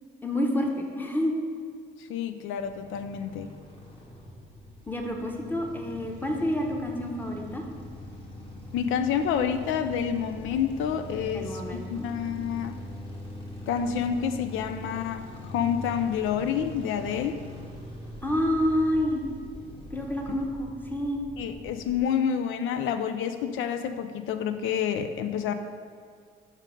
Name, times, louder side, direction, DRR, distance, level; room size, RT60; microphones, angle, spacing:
voice 1, 0.2-1.3 4.9-7.6 11.3-12.0 18.2-19.2 19.9-21.2, left 1 dB, 10° left, 1 dB, 0.9 m, -28 dB
voice 2, 2.0-3.5 8.7-12.8 13.7-17.4 21.4-25.5, left 8 dB, 85° left, 8 dB, 0.4 m, -28 dB
sound 1, 2.6-22.0, equal, 25° left, 1.4 m, -42 dB
5.3 x 5.2 x 5.1 m, 2.1 s
cardioid pair, 90°, 20 cm